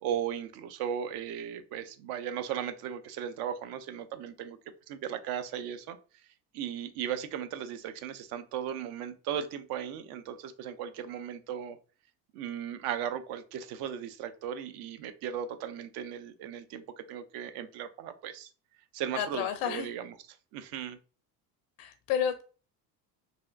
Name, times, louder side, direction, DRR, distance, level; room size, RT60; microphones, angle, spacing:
voice 1, 0.0-4.6 4.9-6.0 6.5-11.8 12.3-18.5 18.9-21.0, right 9 dB, 50° right, 10 dB, 0.5 m, -37 dB
voice 2, 19.1-19.9 21.8-22.4, left 9 dB, 55° left, 8 dB, 0.5 m, -31 dB
3.4 x 2.5 x 2.3 m, 0.36 s
hypercardioid pair, 65°, 49 cm